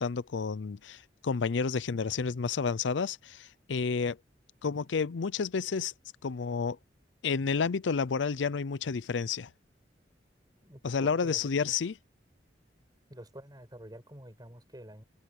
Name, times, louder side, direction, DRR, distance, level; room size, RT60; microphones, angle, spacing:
voice 1, 0.0-4.2 4.6-5.9 6.2-6.8 7.2-9.5 10.8-12.0, left 5 dB, 90° left, 0.5 m, -30 dB
voice 2, 10.6-11.4 13.1-15.0, right 1 dB, 20° right, 6.3 m, -48 dB
head